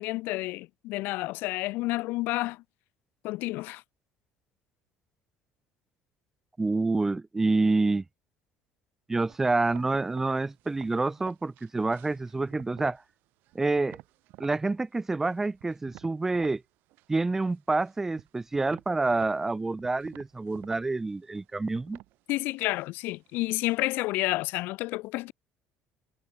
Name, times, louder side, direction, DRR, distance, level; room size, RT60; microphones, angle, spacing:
voice 1, 0.0-2.6 3.2-3.8 22.3-25.3, left 20 dB, 70° left, 0.6 m, -30 dB
voice 2, 6.6-8.0 9.1-13.0 13.5-14.0 14.4-16.6 17.1-22.0, right 3 dB, 10° right, 0.3 m, -27 dB
sound 1, 9.3-13.1 13.4-14.6 15.0-16.6 16.9-17.5 17.8-24.1, right 19 dB, 70° right, 1.3 m, -52 dB
cardioid pair, 140°, 3 cm